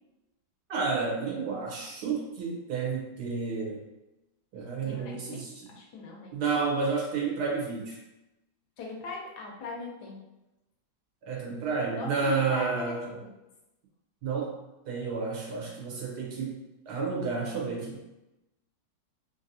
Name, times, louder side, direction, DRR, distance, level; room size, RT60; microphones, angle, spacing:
voice 1, 0.7-3.8 4.5-5.7 6.3-8.0 11.2-13.1 14.2-14.5 14.9-16.5 16.9-18.0, right 4 dB, 70° right, -2 dB, 1.3 m, -31 dB
voice 2, 4.8-6.3 8.8-10.2 11.9-13.3, left 3 dB, 75° left, 0 dB, 1.2 m, -40 dB
3.2 x 2.6 x 2.6 m, 0.98 s
omnidirectional pair, 1.8 m